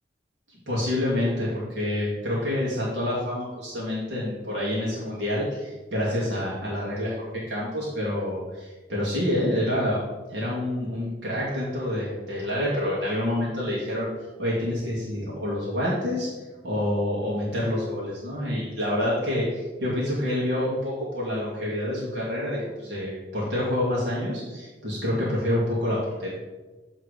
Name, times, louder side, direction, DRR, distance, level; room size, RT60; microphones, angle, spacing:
voice 1, 0.7-10.0 10.3-14.1 14.4-16.3 16.6-26.3, left 1 dB, 80° right, -7 dB, 2.0 m, -27 dB
8.3 x 3.6 x 4.9 m, 1.2 s
head